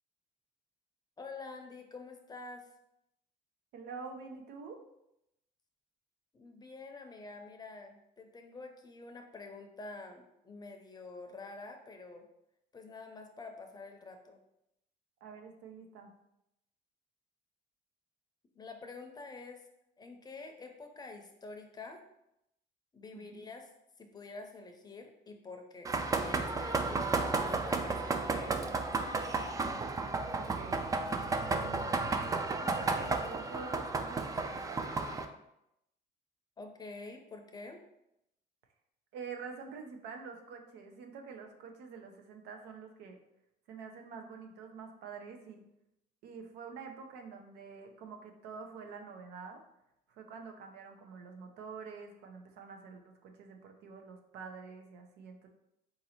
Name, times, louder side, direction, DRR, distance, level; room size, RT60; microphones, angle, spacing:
voice 1, 1.2-2.7 6.3-12.3 12.7-14.4 18.5-19.6 20.0-22.0 22.9-23.7 24.0-29.3 36.6-37.8, left 3 dB, 25° left, 4 dB, 0.6 m, -48 dB
voice 2, 3.7-4.8 15.2-16.1 23.1-23.4 30.3-30.9 31.3-31.9 32.6-34.9 39.1-43.2 43.7-45.7 46.2-49.6 50.1-55.5, right 5 dB, 85° right, 4 dB, 0.7 m, -47 dB
sound 1, 25.8-35.2, right 3 dB, 20° right, 0.3 m, -33 dB
3.9 x 2.7 x 4.3 m, 0.83 s
cardioid pair, 110°, 17 cm